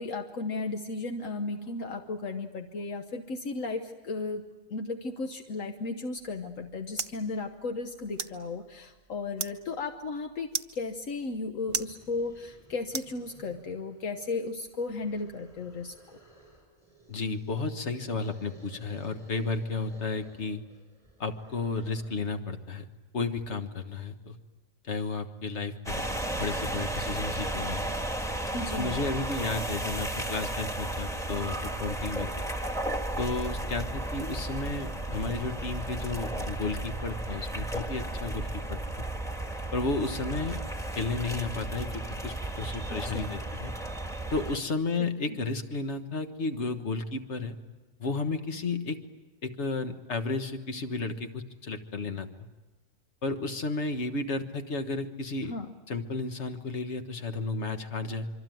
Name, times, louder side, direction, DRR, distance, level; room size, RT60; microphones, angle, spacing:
voice 1, 0.0-4.4 4.7-16.0 28.5-29.0 42.9-43.4 45.0-45.4 55.4-55.7, left 3 dB, 70° left, 6 dB, 1.5 m, -35 dB
sound 1, 6.2-13.7, right 6 dB, 50° right, 1.2 m, -41 dB
sound 2, 11.6-22.4, equal, 25° left, 8.2 m, -57 dB
voice 2, 17.1-20.6 21.2-22.9 23.1-24.4 24.8-27.9 28.7-32.5 33.2-39.1 39.7-40.6 41.0-43.7 44.3-47.6 48.0-49.0 49.4-52.3 53.2-55.6 55.9-58.3, left 3 dB, 55° left, 8 dB, 1.7 m, -33 dB
sound 3, 25.9-44.6, right 1 dB, ahead, 1.8 m, -34 dB
25.5 x 25.0 x 9.3 m, 1.1 s
omnidirectional pair, 1.4 m